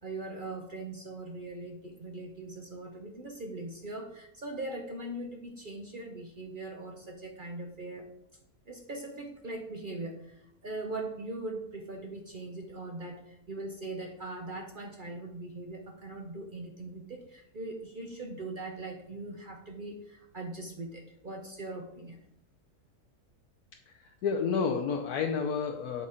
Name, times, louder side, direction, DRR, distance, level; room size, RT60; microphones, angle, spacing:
voice 1, 0.0-8.1 8.7-22.2, right 2 dB, 50° right, 3 dB, 0.6 m, -40 dB
voice 2, 24.0-26.1, left 5 dB, 75° left, 2 dB, 1.2 m, -30 dB
7.2 x 4.1 x 4.9 m, 0.79 s
omnidirectional pair, 1.6 m